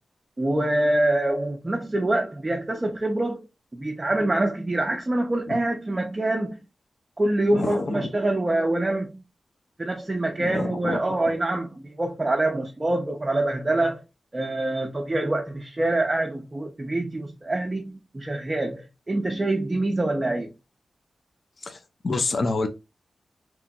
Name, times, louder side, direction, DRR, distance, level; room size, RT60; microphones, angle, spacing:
voice 1, 0.4-3.5 3.7-6.6 7.2-9.2 9.8-14.0 14.3-20.5, right 2 dB, 20° right, 0.5 m, -25 dB
voice 2, 7.5-8.1 10.4-11.0 21.6-22.7, left 3 dB, 45° left, 0.4 m, -28 dB
2.9 x 2.4 x 2.5 m
wide cardioid pair, 160°, 0 cm